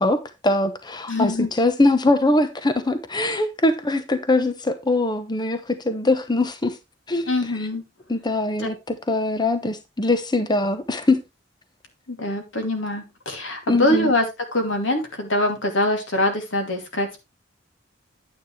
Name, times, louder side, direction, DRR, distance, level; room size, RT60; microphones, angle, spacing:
voice 1, 0.0-6.8 7.1-7.7 8.1-11.2 13.7-14.1, left 2 dB, 25° left, 0.9 m, -22 dB
voice 2, 1.1-1.5 7.3-7.8 12.1-14.2 14.5-17.1, left 1 dB, 90° left, 2.6 m, -23 dB
9.3 x 8.9 x 3.2 m
head